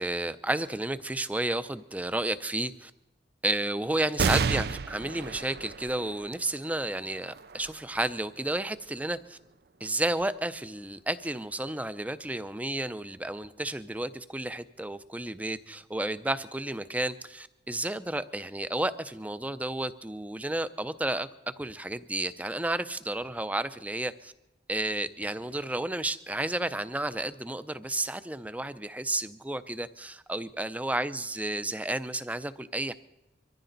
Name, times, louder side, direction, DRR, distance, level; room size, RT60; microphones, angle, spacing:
voice 1, 0.0-2.9 3.4-9.4 9.8-21.3 21.6-24.3 24.7-32.9, right 1 dB, 10° right, 13 dB, 0.5 m, -32 dB
sound 1, 4.2-11.1 11.7-11.8 12.9-13.5, right 5 dB, 60° right, 0.5 m, -34 dB
24.0 x 14.5 x 4.0 m, 0.92 s
head